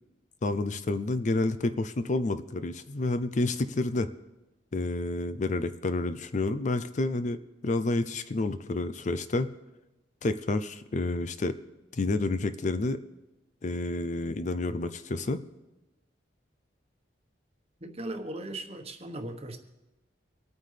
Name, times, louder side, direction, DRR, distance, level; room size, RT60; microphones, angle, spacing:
voice 1, 0.4-4.1 4.7-9.5 10.2-11.6 11.9-13.0 13.6-15.4, left 2 dB, 40° left, 11 dB, 0.5 m, -29 dB
voice 2, 17.8-19.6, right 1 dB, 35° right, 5 dB, 1.2 m, -38 dB
25.0 x 9.3 x 3.4 m, 1.0 s
head